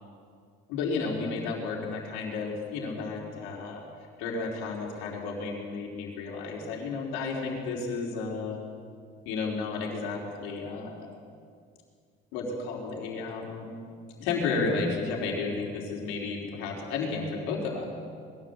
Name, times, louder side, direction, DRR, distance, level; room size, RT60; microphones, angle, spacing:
voice 1, 0.7-3.8 4.2-8.6 9.2-11.1 12.3-13.7 14.2-17.9, left 4 dB, 80° left, -2 dB, 4.5 m, -32 dB
21.5 x 15.5 x 8.3 m, 2.2 s
cardioid pair, 165°, 21 cm